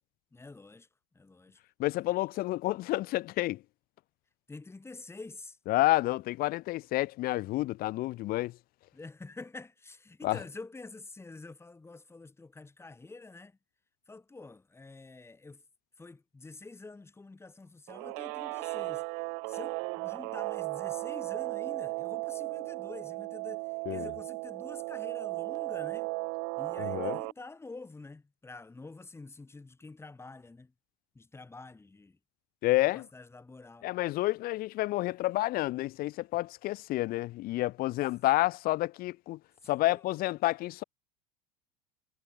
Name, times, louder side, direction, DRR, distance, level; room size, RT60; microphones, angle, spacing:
voice 1, 0.3-0.9 1.1-1.6 4.5-5.6 8.9-13.6 14.1-15.6 16.0-19.1 19.5-26.1 26.6-30.7 31.1-32.2 32.9-33.9 39.8-40.2, left 3 dB, 10° left, 2.8 m, -47 dB
voice 2, 1.8-3.6 5.7-8.6 10.2-10.4 23.9-24.1 26.8-27.2 32.6-33.1 33.8-39.4 39.7-40.8, left 17 dB, 50° left, 0.9 m, -29 dB
Guitar, 17.9-27.3, right 39 dB, 65° right, 1.8 m, -36 dB
hypercardioid pair, 90°, 20 cm